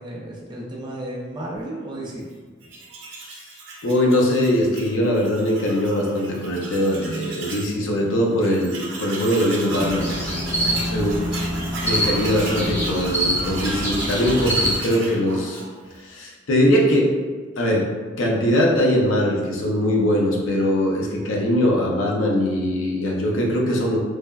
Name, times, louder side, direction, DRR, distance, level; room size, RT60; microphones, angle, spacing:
voice 1, 0.0-2.3 10.5-11.1, right 1 dB, 25° right, -4 dB, 0.5 m, -34 dB
Tools, 2.6-7.7 8.1-8.2 8.4-16.0, right 2 dB, 75° right, 0.6 m, -35 dB
voice 2, 3.8-10.1 10.9-11.1 11.8-15.6 16.1-17.1 17.6-17.9 18.2-24.0, equal, 90° left, -2 dB, 0.5 m, -21 dB
sound 1, 9.8-14.7, equal, 30° left, 1.1 m, -25 dB
3.2 x 2.2 x 2.2 m, 1.4 s
head